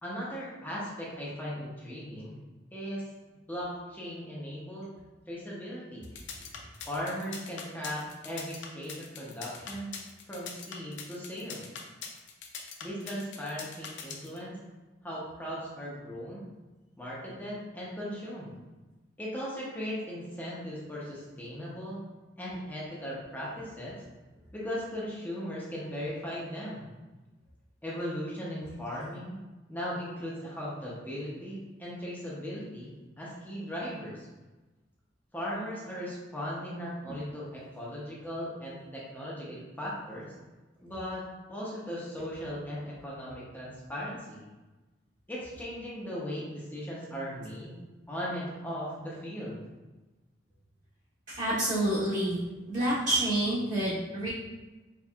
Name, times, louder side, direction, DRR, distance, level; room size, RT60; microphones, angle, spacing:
voice 1, 0.0-2.4 2.7-3.0 3.5-4.9 5.3-6.1 6.9-9.9 10.3-11.6 12.8-14.6 15.0-16.4 17.0-18.5 19.2-22.0 22.4-24.0 24.5-26.9 27.8-29.4 29.7-34.3 35.3-40.3 40.8-44.4 45.3-47.8 48.1-49.7, equal, 10° left, -6 dB, 0.8 m, -38 dB
sound 1, 6.0-14.4, left 6 dB, 75° left, 0.5 m, -42 dB
voice 2, 51.3-52.4 52.7-54.3, right 1 dB, 45° right, -11 dB, 1.1 m, -28 dB
4.3 x 3.0 x 2.4 m, 1.2 s
head